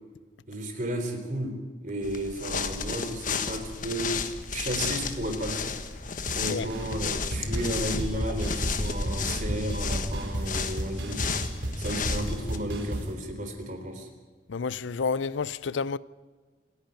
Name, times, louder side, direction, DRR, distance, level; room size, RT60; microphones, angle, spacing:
voice 1, 0.5-1.5 1.8-4.1 4.5-5.8 6.4-11.2 11.7-14.1, right 1 dB, 45° right, 3.7 m, -33 dB
sound 1, 2.0-12.6, left 4 dB, 45° left, 1.4 m, -32 dB
sound 2, 6.3-6.4 6.7-7.1 7.3-13.1, right 1 dB, 80° right, 4.0 m, -33 dB
voice 2, 14.5-16.0, left 5 dB, 75° left, 0.5 m, -29 dB
27.5 x 10.5 x 9.0 m
head